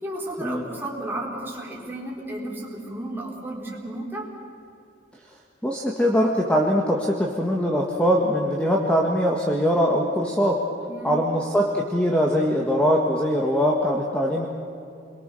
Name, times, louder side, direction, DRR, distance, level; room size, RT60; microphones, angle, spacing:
voice 1, 0.0-4.3 10.9-11.2, right 1 dB, 10° right, -3 dB, 4.7 m, -33 dB
voice 2, 5.6-10.6 11.0-14.5, equal, 5° left, -1 dB, 1.8 m, -22 dB
29.5 x 22.5 x 7.0 m, 2.6 s
head